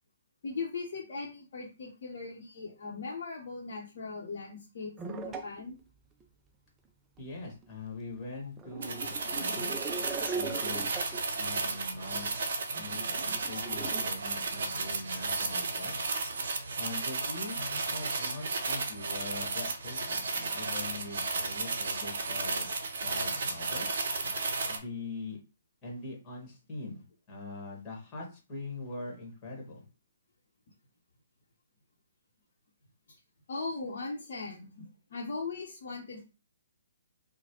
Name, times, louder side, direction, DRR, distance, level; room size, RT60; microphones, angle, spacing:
voice 1, 0.4-5.8 33.5-34.8 35.1-36.2, left 4 dB, 55° left, -5 dB, 0.8 m, -39 dB
sound 1, 5.0-5.6 6.2-6.3 7.2-7.3 7.6-7.7 8.6-11.2 11.7-11.8 12.1-12.4 12.7-14.0, right 5 dB, 15° right, 0.4 m, -40 dB
voice 2, 7.2-9.7 10.4-10.9 11.4-12.3 12.8-15.9 16.8-17.6 17.9-22.7 23.0-23.9 24.7-25.4 25.8-29.8, left 3 dB, 25° left, -1 dB, 1.3 m, -42 dB
sound 2, 8.8-24.8, right 3 dB, 60° right, 0.6 m, -33 dB
3.0 x 2.1 x 2.9 m, 0.31 s
figure-of-eight pair, 130°, 0 cm